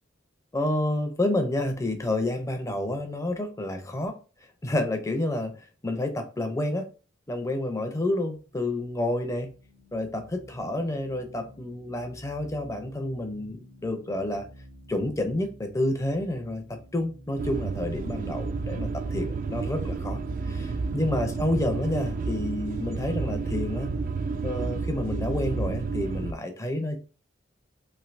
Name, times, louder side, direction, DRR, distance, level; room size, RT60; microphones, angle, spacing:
voice 1, 0.5-4.1 4.6-5.5 5.8-6.8 7.3-9.5 9.9-14.5 14.9-20.2 20.5-23.9 24.4-27.0, left 1 dB, 15° left, 5 dB, 0.5 m, -29 dB
sound 1, 8.3-21.2, equal, 75° right, 1.2 m, -52 dB
sound 2, 17.4-26.3, right 4 dB, 45° right, 0.3 m, -31 dB
3.2 x 2.6 x 2.5 m, 0.36 s
head